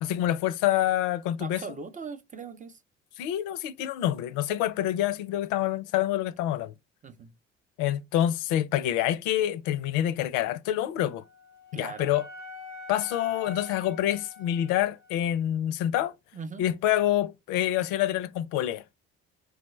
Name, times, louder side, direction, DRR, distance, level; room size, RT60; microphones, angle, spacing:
voice 1, 0.0-1.6 3.2-6.7 7.8-11.2 11.7-12.2 12.9-16.1 16.6-18.8, left 12 dB, 60° left, 0.4 m, -27 dB
voice 2, 1.4-2.8 7.0-7.3 11.7-12.1 16.3-16.7, right 4 dB, 20° right, 0.6 m, -40 dB
Wind instrument woodwind instrument, 11.0-15.2, left 3 dB, 90° right, 1.6 m, -45 dB
4.8 x 2.0 x 3.0 m
figure-of-eight pair, 50°, 35 cm